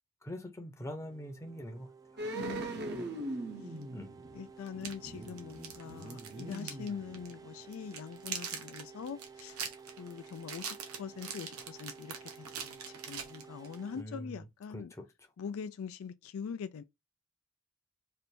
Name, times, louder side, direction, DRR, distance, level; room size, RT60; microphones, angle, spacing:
voice 1, 0.2-1.9 3.9-4.1 13.9-14.4 14.7-15.0, left 1 dB, 15° left, 0.7 m, -43 dB
sound 1, 1.0-14.0, right 5 dB, 15° right, 0.3 m, -53 dB
sound 2, 2.2-7.6 7.9-8.0, right 2 dB, 50° right, 0.7 m, -41 dB
voice 2, 2.3-3.3 4.3-9.6 10.0-14.9 15.4-16.8, left 6 dB, 65° left, 0.4 m, -43 dB
sound 3, 3.8-3.9 4.7-6.9 7.1-7.3 7.7-13.8, right 7 dB, 85° right, 0.9 m, -43 dB
3.3 x 2.6 x 4.3 m
head